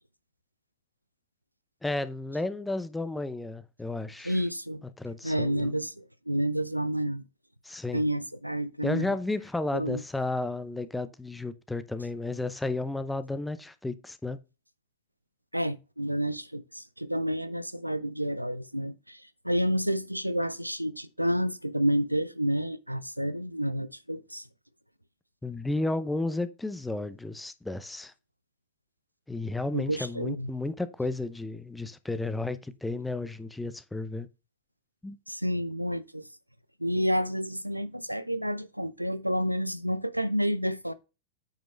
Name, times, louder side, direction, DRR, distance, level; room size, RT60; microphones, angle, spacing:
voice 1, 1.8-4.4 5.0-5.7 7.6-8.0 8.8-14.4 25.4-28.1 29.3-34.3 35.0-35.2, left 2 dB, 5° left, 0.7 m, -33 dB
voice 2, 4.2-4.8 5.2-7.2 7.9-9.1 9.7-10.0 15.5-24.4 29.7-30.5 35.3-36.2 36.8-40.9, equal, 90° right, 0.4 m, -29 dB
8.8 x 5.2 x 3.2 m
figure-of-eight pair, 90°, 0 cm